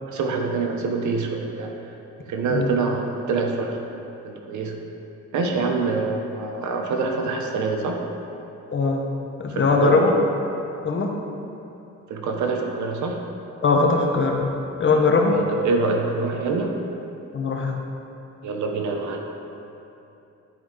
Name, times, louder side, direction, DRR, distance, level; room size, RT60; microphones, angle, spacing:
voice 1, 0.1-1.9 2.2-3.8 4.2-4.8 5.3-8.0 9.5-10.0 12.1-13.2 15.2-16.7 18.4-19.2, right 4 dB, 70° right, 2 dB, 1.0 m, -25 dB
voice 2, 8.7-9.0 9.4-10.1 10.8-11.1 13.6-15.4 17.3-17.8, left 4 dB, 40° left, 1 dB, 1.0 m, -20 dB
11.0 x 4.6 x 3.8 m, 2.9 s
cardioid pair, 90°, 30 cm